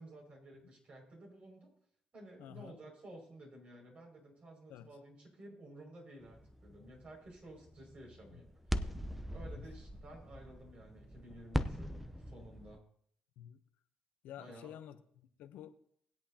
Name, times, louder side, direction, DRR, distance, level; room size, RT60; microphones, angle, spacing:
voice 1, 0.0-1.7 2.1-8.5 9.3-12.8 14.4-14.7, right 1 dB, 50° right, 5.9 m, -53 dB
voice 2, 2.4-2.8 4.7-4.9 8.3-8.4 9.4-9.7 11.6-12.1 13.4-13.6 14.2-15.8, left 11 dB, 80° left, 0.8 m, -52 dB
sound 1, 6.2-12.8, equal, 5° right, 0.8 m, -41 dB
19.5 x 8.4 x 2.9 m
supercardioid pair, 65°, 3 cm